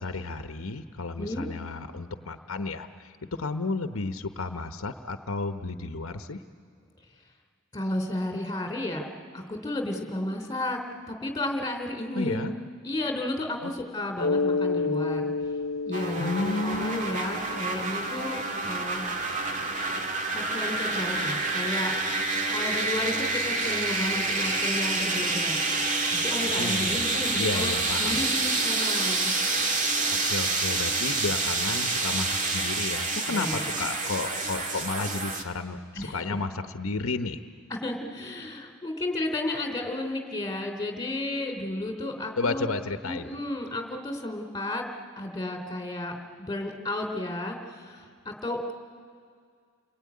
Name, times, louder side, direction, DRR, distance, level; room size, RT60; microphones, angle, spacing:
voice 1, 0.0-6.4 12.1-12.5 13.6-13.7 16.2-17.0 26.6-28.2 30.1-37.4 42.4-43.2, left 3 dB, 80° left, 8 dB, 1.0 m, -32 dB
voice 2, 7.7-9.1 9.3-10.8 11.1-12.4 12.8-15.3 15.9-19.0 20.3-21.9 22.5-25.6 26.1-29.3 33.3-33.6 35.9-36.4 37.7-42.7 43.0-44.9 45.2-48.7, left 1 dB, 15° left, 3 dB, 3.2 m, -32 dB
Mallet percussion, 14.2-18.6, left 4 dB, 60° left, 0.7 m, -30 dB
sound 1, 15.9-35.4, right 3 dB, 35° right, 1.9 m, -28 dB
30.0 x 21.0 x 9.6 m, 2.1 s
head